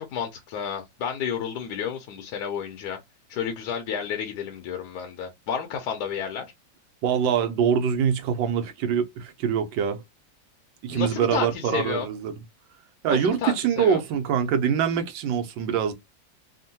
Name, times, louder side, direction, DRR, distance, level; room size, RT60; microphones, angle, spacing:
voice 1, 0.0-3.0 3.3-6.5 10.9-12.1 13.1-14.0, left 7 dB, 70° left, 1.1 m, -31 dB
voice 2, 7.0-10.0 10.8-12.4 13.0-15.9, right 7 dB, 85° right, 1.4 m, -24 dB
3.5 x 2.1 x 2.7 m
omnidirectional pair, 2.0 m